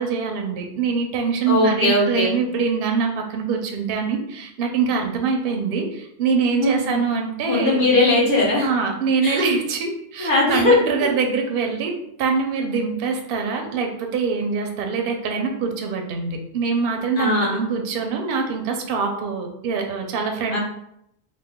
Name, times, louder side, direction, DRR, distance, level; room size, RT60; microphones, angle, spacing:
voice 1, 0.0-7.8 8.6-20.6, right 5 dB, 65° right, 3 dB, 0.7 m, -24 dB
voice 2, 1.5-2.3 6.5-7.0 7.4-8.7 9.2-9.4 10.2-10.8 17.2-17.6 20.5-20.6, left 2 dB, 50° left, -4 dB, 1.2 m, -19 dB
3.0 x 2.2 x 3.5 m, 0.76 s
omnidirectional pair, 1.1 m